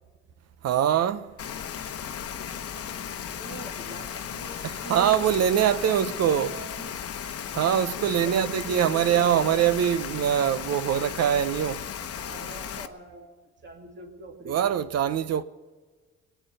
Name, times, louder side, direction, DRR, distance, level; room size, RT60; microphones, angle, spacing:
voice 1, 0.6-1.3 4.6-6.6 7.5-11.8 14.4-15.4, right 9 dB, 60° right, 0.8 m, -23 dB
Rain, 1.4-12.9, left 8 dB, 55° left, 1.0 m, -36 dB
voice 2, 3.1-5.2 5.6-7.0 8.0-9.5 12.0-14.7, right 2 dB, 40° right, 2.5 m, -44 dB
19.0 x 9.3 x 8.1 m
supercardioid pair, 60°, 29 cm